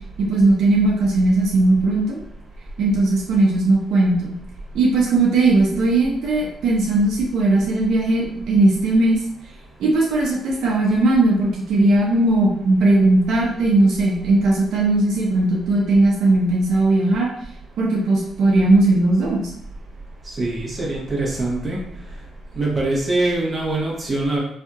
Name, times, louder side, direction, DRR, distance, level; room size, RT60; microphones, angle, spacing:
voice 1, 0.2-2.2 2.8-4.4 4.7-9.2 9.8-17.3 17.8-19.5, right 2 dB, 75° right, -3 dB, 0.7 m, -18 dB
voice 2, 20.4-21.8 22.5-24.4, right 2 dB, 30° right, -4 dB, 1.2 m, -23 dB
3.4 x 2.7 x 2.4 m, 0.72 s
cardioid pair, 90°, 0 cm